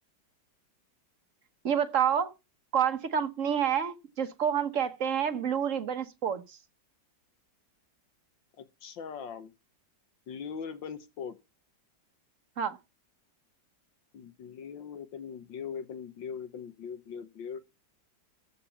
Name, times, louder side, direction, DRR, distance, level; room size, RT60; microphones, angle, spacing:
voice 1, 1.6-2.3 2.7-6.6 12.6-12.8, right 8 dB, 45° right, 1.3 m, -28 dB
voice 2, 8.6-9.5 10.3-11.4 14.1-17.6, left 7 dB, 80° left, 1.8 m, -40 dB
14.5 x 5.2 x 6.9 m
omnidirectional pair, 2.0 m